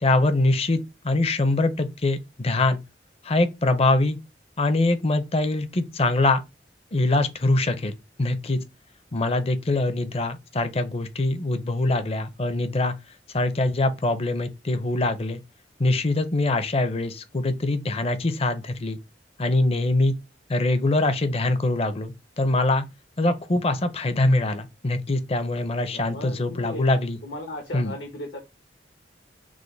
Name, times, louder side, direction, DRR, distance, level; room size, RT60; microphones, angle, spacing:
voice 1, 0.0-2.8 3.2-4.2 4.6-6.4 6.9-8.6 9.1-12.9 13.3-15.4 15.8-19.0 19.4-20.1 20.5-22.9 23.2-27.2 27.7-27.9, left 2 dB, 35° left, 0.6 m, -23 dB
voice 2, 25.9-26.9 27.2-28.4, left 1 dB, 80° left, 1.1 m, -36 dB
6.2 x 2.1 x 3.2 m
head